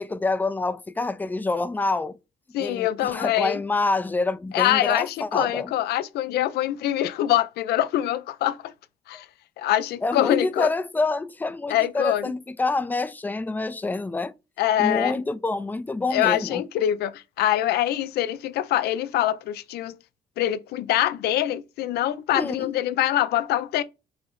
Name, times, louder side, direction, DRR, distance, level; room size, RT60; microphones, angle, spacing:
voice 1, 0.0-2.2 2.6-5.7 10.0-14.3 14.8-16.6 22.3-22.7, left 3 dB, 10° left, 0.3 m, -27 dB
voice 2, 2.5-3.6 4.5-8.7 9.1-9.3 9.6-10.7 11.7-12.3 14.6-15.2 16.1-20.0 20.4-23.8, left 12 dB, 85° left, 0.4 m, -24 dB
4.9 x 2.0 x 3.7 m
cardioid pair, 100°, 16 cm